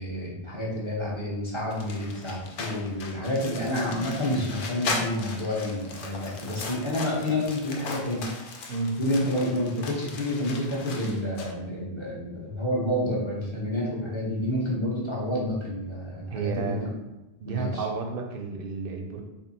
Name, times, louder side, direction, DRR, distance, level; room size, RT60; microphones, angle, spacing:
voice 1, 0.0-8.2 9.0-17.0 17.4-17.8, left 1 dB, 30° left, -5 dB, 0.8 m, -29 dB
Book Torn Apart, 1.7-11.5, left 3 dB, 65° left, 0.7 m, -38 dB
voice 2, 8.7-9.0 16.3-16.9 17.4-19.2, right 4 dB, 65° right, 2 dB, 0.7 m, -32 dB
3.6 x 2.0 x 3.9 m, 0.99 s
omnidirectional pair, 1.0 m